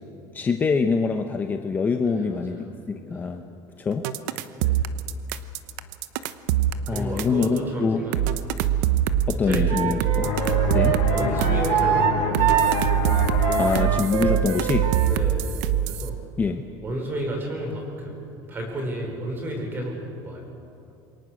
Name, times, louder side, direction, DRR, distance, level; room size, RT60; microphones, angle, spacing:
voice 1, 0.3-3.4 3.8-4.1 6.9-8.0 9.3-10.3 10.7-11.0 13.6-14.9 16.4-16.7, left 5 dB, 20° left, 6 dB, 0.9 m, -25 dB
voice 2, 2.0-2.7 3.1-3.3 4.6-4.8 6.9-8.5 8.8-8.9 9.4-10.0 10.8-12.8 15.0-16.2 16.8-18.2 18.5-20.5, right 1 dB, 20° right, 2 dB, 5.1 m, -32 dB
sound 1, 4.0-7.6 8.1-11.8 12.3-16.1, right 11 dB, 85° right, 1.0 m, -23 dB
Wind instrument woodwind instrument, 9.7-15.1, right 8 dB, 60° right, 2.6 m, -25 dB
sound 2, 10.2-15.6, left 6 dB, 60° left, 3.2 m, -29 dB
27.5 x 23.0 x 6.5 m, 2.7 s
cardioid pair, 160°, 9 cm